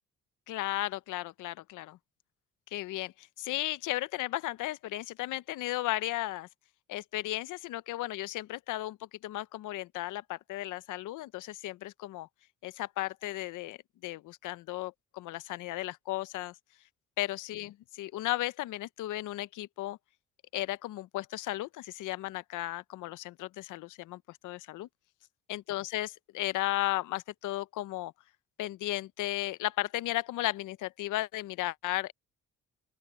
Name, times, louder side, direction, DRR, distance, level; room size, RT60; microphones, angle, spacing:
voice 1, 0.5-2.0 2.7-6.5 6.9-9.0 9.2-12.3 12.6-16.5 17.2-20.0 20.5-24.9 25.5-28.1 28.6-32.1, left 16 dB, 85° left, 0.7 m, -35 dB
open air
cardioid pair, 90°, 30 cm